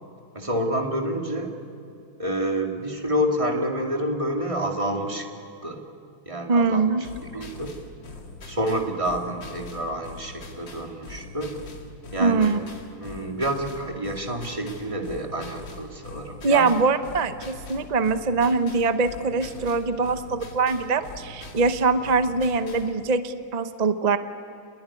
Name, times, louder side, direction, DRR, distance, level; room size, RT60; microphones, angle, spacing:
voice 1, 0.3-1.5 2.2-5.3 5.6-5.8 6.3-6.8 7.3-7.8 8.5-11.6 12.1-12.5 13.0-16.7, right 1 dB, 15° right, 1 dB, 2.1 m, -28 dB
voice 2, 6.5-7.1 7.3-7.4 12.2-12.6 16.4-24.2, right 4 dB, 45° right, 10 dB, 0.5 m, -23 dB
sound 1, 7.0-23.0, left 3 dB, 65° left, 2.8 m, -42 dB
27.5 x 21.5 x 9.9 m, 2.6 s
omnidirectional pair, 2.2 m